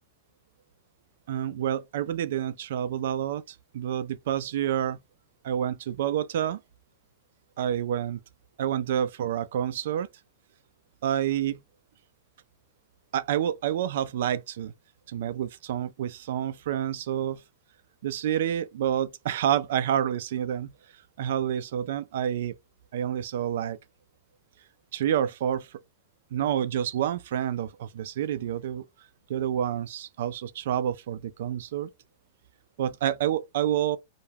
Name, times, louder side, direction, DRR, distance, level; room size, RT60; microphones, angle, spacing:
voice 1, 1.3-5.0 5.4-6.6 7.6-8.2 8.6-10.1 11.0-11.6 13.1-14.7 15.1-17.4 18.0-20.7 21.2-22.6 22.9-23.8 24.9-25.7 26.3-28.8 29.3-31.9 32.8-34.0, right 10 dB, 70° right, 0.3 m, -28 dB
2.2 x 2.2 x 3.2 m
hypercardioid pair, 125°, 0 cm